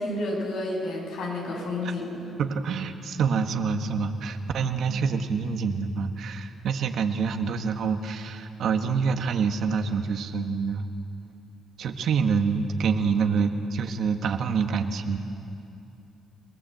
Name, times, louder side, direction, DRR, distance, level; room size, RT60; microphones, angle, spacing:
voice 1, 0.0-2.2 4.8-5.0, left 1 dB, 90° left, -2 dB, 7.9 m, -31 dB
voice 2, 2.4-10.8 11.8-15.2, right 5 dB, 70° right, 6 dB, 1.6 m, -26 dB
30.0 x 19.0 x 7.9 m, 2.7 s
cardioid pair, 90°, 0 cm